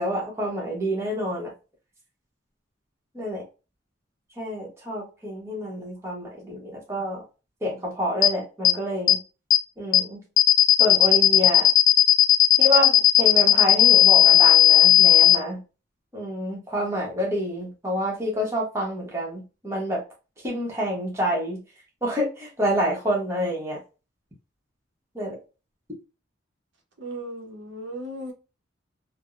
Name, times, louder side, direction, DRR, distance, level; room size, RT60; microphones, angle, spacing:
voice 1, 0.0-1.5 3.1-3.4 4.4-7.2 7.6-9.2 9.8-10.2 10.8-11.7 12.6-15.6 16.1-20.0 20.4-21.6 22.0-23.8 25.1-25.4, equal, 15° right, 0.9 m, -28 dB
sound 1, 8.2-8.3 8.6-8.7 9.1-9.2 9.5-9.6 9.9-10.0 10.4-15.4, left 13 dB, 75° left, 0.3 m, -15 dB
voice 2, 27.0-28.3, right 1 dB, 65° right, 0.7 m, -36 dB
3.4 x 2.0 x 2.4 m
head